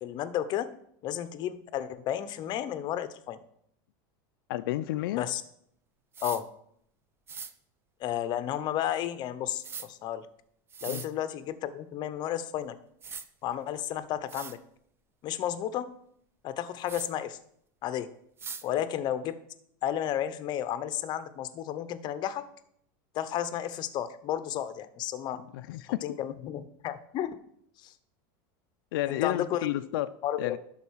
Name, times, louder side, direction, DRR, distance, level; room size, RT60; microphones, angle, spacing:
voice 1, 0.0-0.7 1.0-3.4 5.1-5.4 6.2-6.4 8.0-10.3 10.8-12.8 13.4-14.6 15.2-15.9 16.4-17.4 17.8-18.1 18.6-19.4 19.8-22.5 23.1-25.4 26.0-27.4 27.8-27.9 29.1-29.9 30.2-30.6, left 11 dB, 40° left, 12 dB, 0.7 m, -32 dB
voice 2, 4.5-5.2 10.9-11.0 25.3-26.0 28.9-30.1 30.4-30.6, left 15 dB, 85° left, 10 dB, 0.5 m, -31 dB
sound 1, 6.1-6.4 7.3-7.5 9.6-9.9 10.7-11.1 12.5-12.6 13.0-13.3 13.9-14.0 14.3-14.6 16.9-17.1 18.4-18.6, right 6 dB, 20° right, 0.6 m, -40 dB
11.5 x 4.0 x 6.3 m, 0.68 s
supercardioid pair, 145°, 12 cm